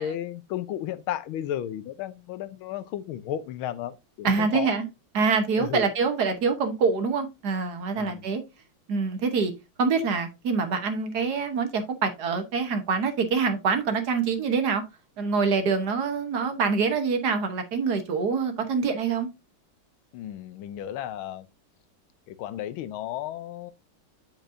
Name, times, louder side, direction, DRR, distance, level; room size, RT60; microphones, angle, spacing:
voice 1, 0.0-4.8 5.6-5.9 8.0-8.3 20.1-21.5 22.3-23.7, left 11 dB, 90° left, 1.5 m, -33 dB
voice 2, 4.2-4.9 5.1-8.4 8.9-9.5 9.8-14.8 15.2-19.3, right 5 dB, 55° right, 1.5 m, -25 dB
8.1 x 6.4 x 2.7 m
omnidirectional pair, 2.3 m